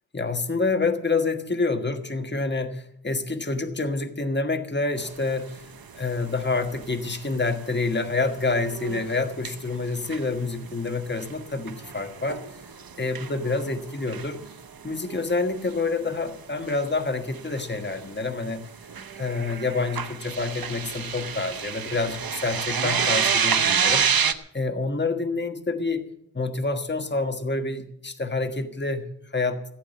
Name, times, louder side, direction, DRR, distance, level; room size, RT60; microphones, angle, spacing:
voice 1, 0.1-5.6 5.9-12.4 13.0-14.4 14.8-18.6 19.1-24.1 24.5-26.0 26.3-29.6, left 3 dB, 30° left, 7 dB, 1.5 m, -27 dB
sound 1, 5.1-5.6 5.9-6.0 6.4-6.5 6.8-7.9 8.2-10.3 10.7-14.6 15.0-15.4 15.7-15.8 16.1-16.2 16.7-18.5 18.9-24.3, right 7 dB, 80° right, 0.9 m, -28 dB
16.5 x 8.4 x 8.2 m, 0.74 s
wide cardioid pair, 65°, 35 cm